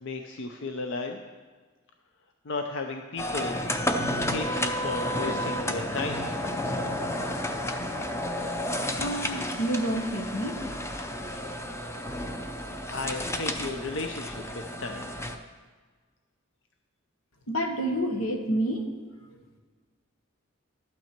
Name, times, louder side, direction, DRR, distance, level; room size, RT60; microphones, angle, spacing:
voice 1, 0.0-1.2 2.5-3.6 4.2-6.2 12.9-14.4 14.8-15.1, left 3 dB, 60° left, 4 dB, 0.6 m, -34 dB
sound 1, 3.2-15.4, left 1 dB, 15° left, 0.6 m, -31 dB
voice 2, 9.0-10.6 17.5-18.9, right 1 dB, 85° left, 4 dB, 1.3 m, -28 dB
12.5 x 8.7 x 4.5 m, 1.4 s
head